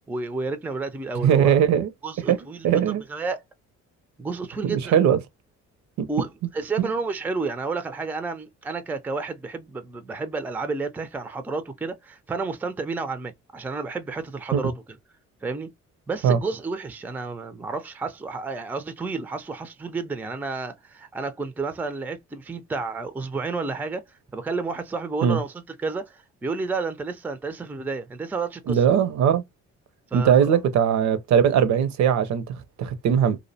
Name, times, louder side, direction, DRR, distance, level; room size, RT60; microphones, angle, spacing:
voice 1, 0.1-1.6 2.0-2.7 3.1-3.4 4.2-4.9 6.1-14.7 15.4-15.7 16.1-24.0 24.3-25.5 25.8-28.8 30.1-30.6, right 4 dB, 5° right, 0.3 m, -31 dB
voice 2, 1.2-1.9 2.3-2.4 2.6-3.0 4.6-5.2 6.0-6.1 6.8-6.9 14.5-14.6 16.2-16.4 25.2-25.4 28.7-29.4 30.1-33.4, right 8 dB, 70° right, 0.5 m, -20 dB
2.5 x 2.0 x 2.6 m
cardioid pair, 90°, 30 cm